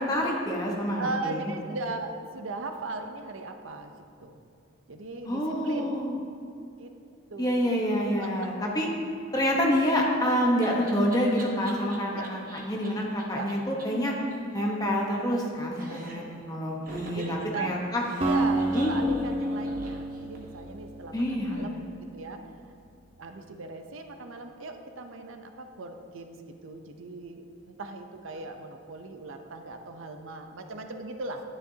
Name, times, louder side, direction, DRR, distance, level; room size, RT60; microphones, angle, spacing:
voice 1, 0.0-1.5 5.2-6.2 7.4-8.9 9.3-12.4 12.6-14.2 14.5-18.0 18.7-18.9 21.1-21.7, equal, 20° left, -2 dB, 1.0 m, -27 dB
voice 2, 1.0-3.9 4.2-4.4 4.9-6.0 6.8-6.9 7.3-8.5 12.1-12.3 13.3-13.5 15.9-16.5 17.1-17.8 18.2-22.8 23.2-31.4, right 3 dB, 75° right, 6 dB, 0.6 m, -38 dB
Laughter, 9.8-12.9 13.2-13.3 13.5-13.6 13.8-13.9 14.1-15.5 15.7-16.4 16.9-20.6, right 2 dB, 45° right, 1.1 m, -46 dB
Acoustic guitar, 18.2-22.3, right 1 dB, 25° right, 0.7 m, -30 dB
10.5 x 9.7 x 2.8 m, 2.5 s
head